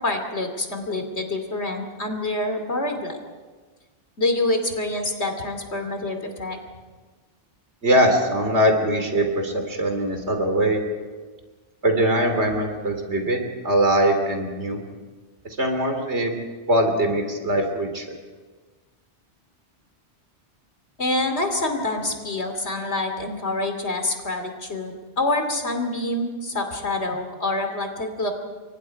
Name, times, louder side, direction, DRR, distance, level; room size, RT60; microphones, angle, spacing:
voice 1, 0.0-3.2 4.2-6.6 21.0-28.3, left 2 dB, 70° left, 5 dB, 3.1 m, -26 dB
voice 2, 7.8-10.8 11.8-14.8 15.6-16.4 16.7-18.0, right 1 dB, 70° right, 4 dB, 3.5 m, -21 dB
29.5 x 24.0 x 4.8 m, 1.4 s
omnidirectional pair, 1.2 m